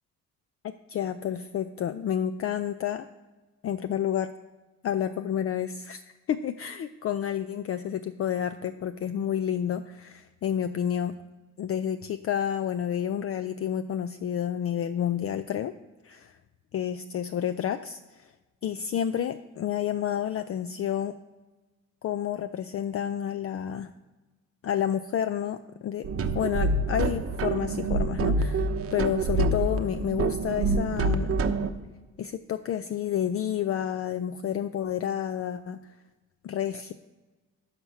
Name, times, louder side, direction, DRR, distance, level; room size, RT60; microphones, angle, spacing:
voice 1, 0.6-3.1 3.6-4.3 4.8-6.0 6.3-11.2 11.6-15.7 16.0-16.4 16.7-18.3 18.6-21.1 22.0-23.9 24.6-26.1 26.3-31.5 32.2-35.8 36.4-36.9, left 9 dB, 50° left, 10 dB, 0.5 m, -30 dB
sound 1, 26.0-31.7, right 3 dB, 50° right, 0.8 m, -27 dB
7.8 x 5.8 x 5.6 m, 1.2 s
cardioid pair, 90°, 30 cm